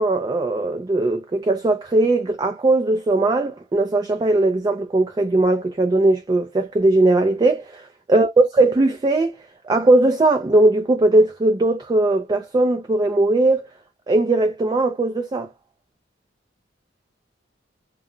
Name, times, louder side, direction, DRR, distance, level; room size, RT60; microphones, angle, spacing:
voice 1, 0.0-7.8 8.1-9.3 9.6-13.7 14.1-15.5, right 2 dB, 20° right, 0.3 m, -19 dB
2.2 x 2.1 x 3.7 m
head